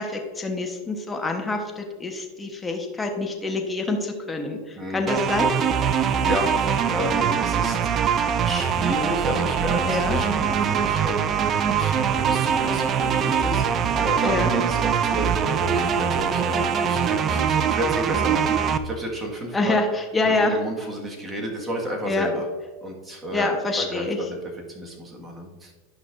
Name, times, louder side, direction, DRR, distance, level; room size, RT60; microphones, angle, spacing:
voice 1, 0.0-5.5 9.8-10.2 14.2-14.5 19.5-20.6 22.1-22.3 23.3-24.2, left 2 dB, 15° left, 3 dB, 1.3 m, -26 dB
voice 2, 4.8-5.3 5.9-7.9 8.4-19.8 20.3-22.5 22.8-23.5 23.8-25.7, equal, 15° right, -1 dB, 1.9 m, -32 dB
sound 1, 5.1-18.8, right 7 dB, 35° right, 0.5 m, -23 dB
11.0 x 5.8 x 2.7 m, 1.4 s
hypercardioid pair, 105°, 0 cm